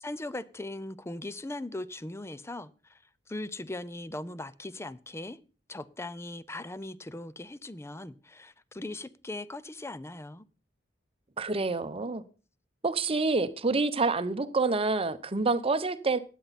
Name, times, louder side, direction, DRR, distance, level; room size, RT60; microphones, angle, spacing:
voice 1, 0.0-3.0 3.3-5.4 5.7-10.4, left 2 dB, 15° left, 0.6 m, -39 dB
voice 2, 11.4-12.2 12.8-16.2, right 3 dB, 30° right, 0.8 m, -27 dB
16.0 x 10.0 x 4.2 m
head